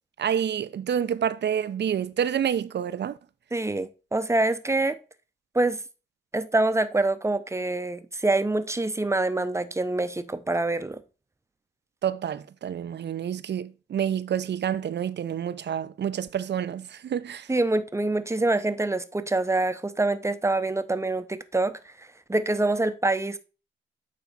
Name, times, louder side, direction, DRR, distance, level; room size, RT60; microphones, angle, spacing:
voice 1, 0.2-3.2 12.0-17.5, right 9 dB, 55° right, 0.6 m, -28 dB
voice 2, 3.5-5.0 5.5-5.8 6.3-11.0 17.5-21.9 22.3-23.4, right 2 dB, 15° right, 0.8 m, -25 dB
8.6 x 3.4 x 4.2 m
supercardioid pair, 55°, 21 cm